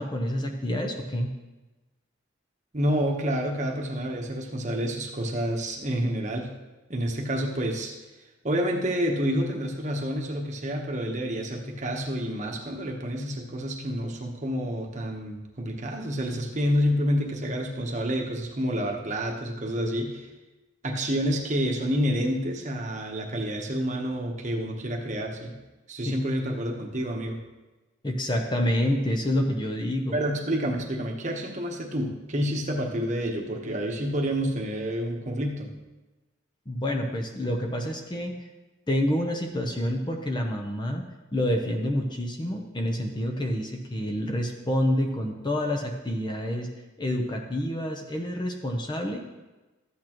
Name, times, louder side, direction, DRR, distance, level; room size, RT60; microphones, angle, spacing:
voice 1, 0.0-1.3 26.1-26.2 28.0-30.2 36.7-38.5 38.9-41.0 41.3-46.7 47.0-49.2, left 1 dB, 20° left, 3 dB, 0.7 m, -28 dB
voice 2, 2.7-6.5 6.9-7.9 8.4-20.3 20.8-25.5 25.9-27.4 30.1-35.7, equal, 35° right, 1 dB, 1.1 m, -28 dB
13.0 x 8.4 x 3.0 m, 1.1 s
head